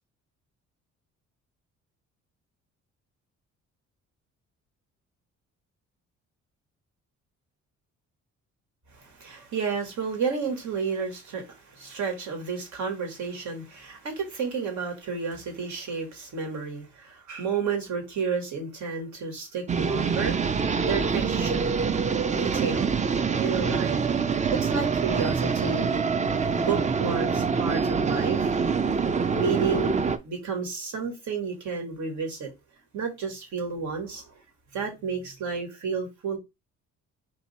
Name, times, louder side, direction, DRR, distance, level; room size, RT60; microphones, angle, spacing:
voice 1, 8.9-20.4 20.8-21.7 22.3-23.0 23.4-24.1 24.5-25.9 26.5-28.5 29.3-32.5 32.9-34.3 34.7-36.4, right 5 dB, 70° right, 2.0 m, -31 dB
sound 1, 19.7-30.2, right 5 dB, 25° right, 0.5 m, -25 dB
3.6 x 2.8 x 4.2 m
cardioid pair, 90°, 30 cm